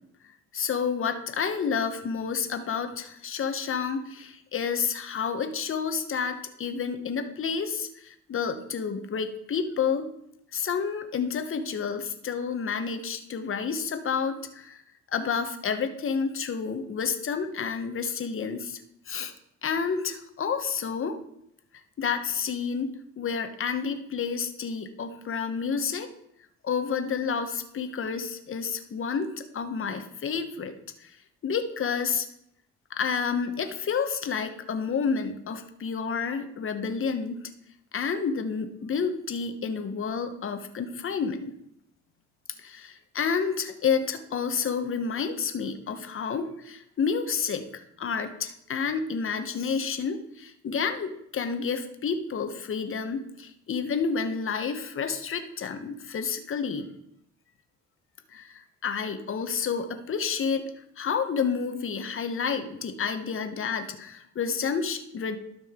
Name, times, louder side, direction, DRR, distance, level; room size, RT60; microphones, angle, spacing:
voice 1, 0.5-10.1 10.5-14.8 15.1-18.8 19.1-19.3 19.6-21.2 22.0-22.9 23.2-26.1 26.6-30.7 31.0-31.1 31.4-32.3 32.9-37.4 37.9-41.5 42.6-56.9 58.3-65.4, left 6 dB, 45° left, 8 dB, 1.0 m, -30 dB
12.5 x 5.4 x 3.6 m, 0.76 s
cardioid pair, 90°, 30 cm